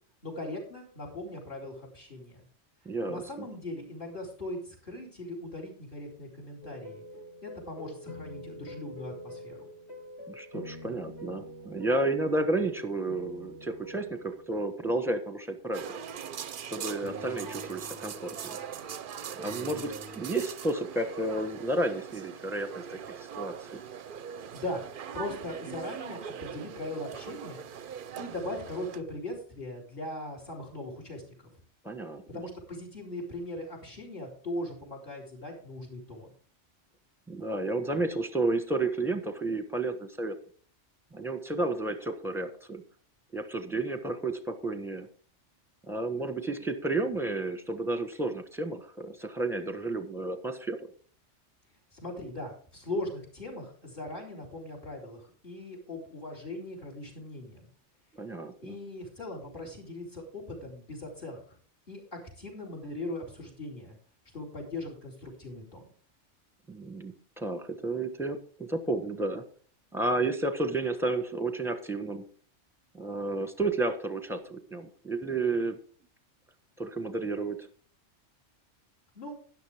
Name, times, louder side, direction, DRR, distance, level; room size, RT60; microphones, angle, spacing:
voice 1, 0.2-2.5 3.1-7.0 7.4-9.7 24.5-24.8 25.1-27.6 28.2-31.2 32.3-36.3 51.9-57.7 58.6-61.4 61.9-64.0 64.3-65.9 79.1-79.3, left 1 dB, 45° left, 2 dB, 4.1 m, -39 dB
voice 2, 2.8-3.5 10.3-15.9 16.7-18.6 19.4-23.8 31.8-32.2 37.3-40.3 41.1-42.8 43.3-45.1 45.8-50.9 58.2-58.7 66.7-69.4 69.9-72.2 72.9-75.8 76.8-77.7, right 2 dB, ahead, 8 dB, 1.2 m, -32 dB
sound 1, 6.6-15.9 17.0-20.4, equal, 60° left, 2.9 m, -46 dB
sound 2, 15.7-29.0, right 8 dB, 55° right, 0.7 m, -41 dB
12.5 x 10.5 x 3.5 m, 0.43 s
omnidirectional pair, 1.2 m